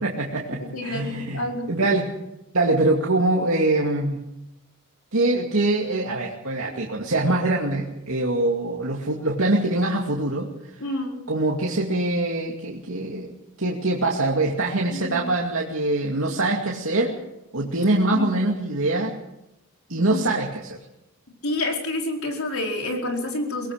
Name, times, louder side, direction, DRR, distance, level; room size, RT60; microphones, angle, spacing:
voice 1, 0.0-2.1 2.5-4.2 5.1-10.5 11.3-13.3 13.6-17.2 17.5-19.1 19.9-20.8, right 2 dB, 70° right, -2 dB, 2.5 m, -23 dB
voice 2, 0.6-1.7 10.8-11.2 14.9-15.2 18.1-18.4 20.1-20.2 21.4-23.7, left 2 dB, 80° left, 1 dB, 4.7 m, -28 dB
23.5 x 18.0 x 6.6 m, 0.89 s
head